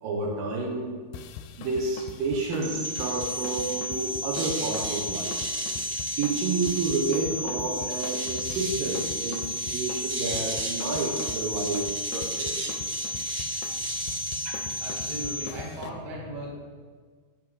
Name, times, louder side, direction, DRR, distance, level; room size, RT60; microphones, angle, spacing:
voice 1, 0.0-0.9 1.6-5.4 6.2-12.8 13.3-13.4, right 3 dB, 70° right, 0 dB, 2.5 m, -30 dB
sound 1, 1.1-15.9, left 8 dB, 80° left, 2.1 m, -42 dB
sound 2, 2.6-15.5, equal, 55° right, 2.0 m, -32 dB
voice 2, 13.7-16.5, right 1 dB, 40° right, -3 dB, 1.6 m, -38 dB
10.0 x 4.5 x 7.8 m, 1.5 s
omnidirectional pair, 4.6 m